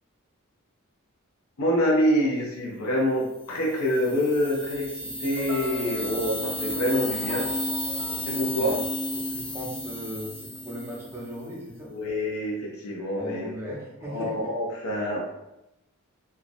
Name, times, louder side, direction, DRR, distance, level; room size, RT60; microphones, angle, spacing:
voice 1, 1.6-7.5 8.3-8.8 11.9-13.5 14.0-15.2, equal, 90° left, -3 dB, 0.5 m, -26 dB
sound 1, 3.4-11.4, left 1 dB, 25° left, 0.8 m, -33 dB
sound 2, 5.4-9.7, left 1 dB, 70° left, 1.3 m, -40 dB
voice 2, 9.1-11.9 13.2-14.3, equal, 10° right, -4 dB, 0.5 m, -37 dB
2.4 x 2.0 x 2.5 m, 0.89 s
head